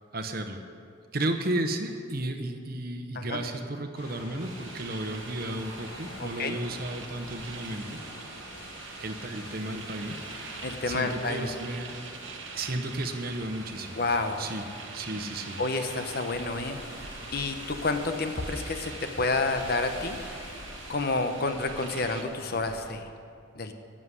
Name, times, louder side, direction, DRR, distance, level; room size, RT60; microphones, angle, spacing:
voice 1, 0.1-0.6 1.1-8.0 9.0-10.2 10.9-12.0 12.5-14.0 14.4-14.6 14.9-15.6, right 1 dB, 50° right, 6 dB, 1.0 m, -33 dB
sound 1, 3.9-22.9, left 1 dB, 85° left, 3.5 m, -45 dB
sound 2, 4.4-22.2, right 5 dB, 75° right, 1.1 m, -45 dB
voice 2, 6.2-6.6 10.6-11.5 14.0-14.4 15.6-16.8 17.3-20.2 20.9-23.0 23.6-23.7, left 3 dB, 50° left, 7 dB, 0.9 m, -29 dB
11.0 x 7.6 x 9.8 m, 2.3 s
head